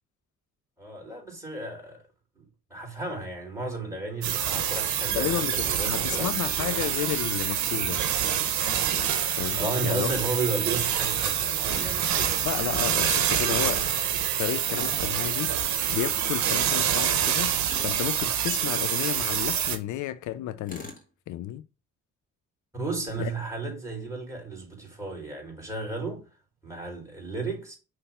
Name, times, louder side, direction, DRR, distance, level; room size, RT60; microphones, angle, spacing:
voice 1, 0.8-2.0 2.4-6.4 9.6-12.5 22.7-26.3 26.6-27.7, right 3 dB, 10° right, 3.8 m, -33 dB
sound 1, 4.2-19.8, right 9 dB, 70° right, 1.0 m, -26 dB
voice 2, 5.1-8.0 9.4-10.3 12.4-13.8 14.4-15.5 15.9-17.5 17.8-20.9 21.3-21.6 23.2-23.3, left 13 dB, 75° left, 0.5 m, -32 dB
Tools, 11.7-12.0 14.7-15.1 17.7-18.1 20.7-21.1, left 2 dB, 25° left, 1.7 m, -41 dB
5.6 x 3.4 x 5.6 m
cardioid pair, 90°, 30 cm